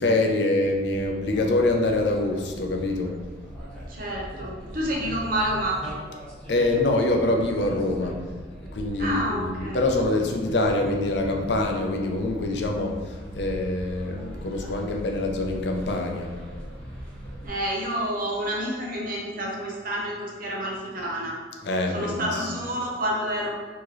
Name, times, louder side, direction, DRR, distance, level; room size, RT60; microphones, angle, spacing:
voice 1, 0.0-3.2 6.5-8.3 8.7-16.4 21.6-22.5, left 2 dB, 65° left, 2 dB, 0.5 m, -25 dB
sound 1, 0.6-17.5, equal, 5° left, 1.1 m, -40 dB
voice 2, 3.9-5.8 9.0-9.8 17.4-21.4 21.9-23.6, right 1 dB, 50° right, -3 dB, 0.9 m, -29 dB
4.6 x 2.9 x 3.1 m, 1.4 s
head